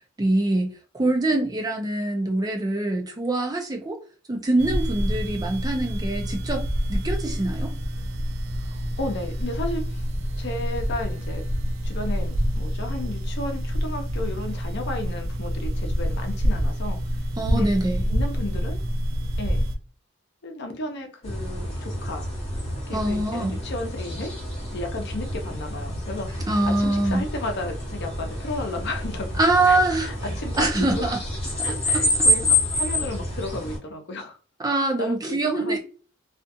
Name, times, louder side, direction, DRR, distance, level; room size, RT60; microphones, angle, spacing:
voice 1, 0.2-4.0 4.3-6.6 6.9-7.7 17.4-18.0 22.9-23.6 26.5-27.2 29.4-30.1 30.5-31.2 31.6-31.7 31.9-32.0 34.6-35.8, right 2 dB, 20° right, 0.4 m, -24 dB
sound 1, 4.6-19.8, equal, 80° right, 0.4 m, -27 dB
voice 2, 8.6-10.1 10.4-11.5 11.8-17.0 17.5-17.7 18.1-18.8 19.4-19.7 20.4-22.3 22.9-24.3 24.7-26.4 26.7-29.4 29.7-31.2 31.6-34.4 34.7-35.8, left 2 dB, 55° left, 0.6 m, -33 dB
sound 2, 21.2-33.8, left 1 dB, 30° left, 1.1 m, -28 dB
2.4 x 2.4 x 2.6 m
head